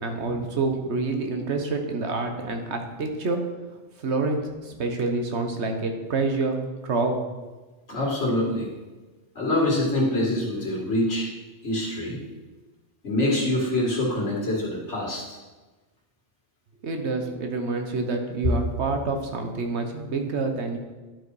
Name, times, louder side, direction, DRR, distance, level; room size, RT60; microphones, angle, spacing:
voice 1, 0.0-3.4 4.0-7.2 16.8-20.8, right 3 dB, 70° right, 4 dB, 1.3 m, -27 dB
voice 2, 7.9-8.7 9.4-11.3 11.6-12.2 13.0-15.4, left 1 dB, 75° left, -3 dB, 2.5 m, -25 dB
11.5 x 4.8 x 4.8 m, 1.2 s
omnidirectional pair, 1.2 m